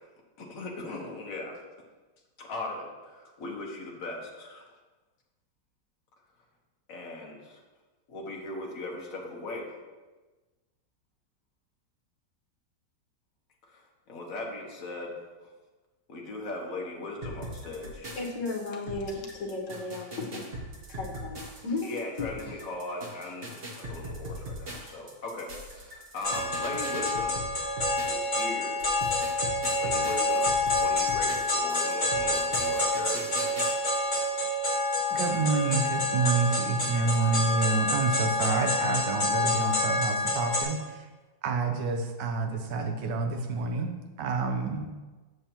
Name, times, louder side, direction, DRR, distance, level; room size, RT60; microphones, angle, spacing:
voice 1, 0.4-1.6 2.4-4.6 6.9-7.6 8.1-9.7 13.6-15.2 16.1-18.1 21.8-27.6 28.1-28.8 29.8-33.7, left 2 dB, 50° left, -1 dB, 1.5 m, -39 dB
sound 1, 17.2-28.4 28.8-33.7, right 1 dB, 40° right, 1.1 m, -41 dB
voice 2, 18.2-20.4 20.9-22.3, left 3 dB, 75° left, 0 dB, 1.8 m, -35 dB
sound 2, 26.2-40.6, left 2 dB, 25° left, 2.0 m, -28 dB
voice 3, 35.1-41.1 41.4-44.9, right 4 dB, 75° right, 4 dB, 1.4 m, -28 dB
7.9 x 6.9 x 2.9 m, 1.2 s
omnidirectional pair, 1.9 m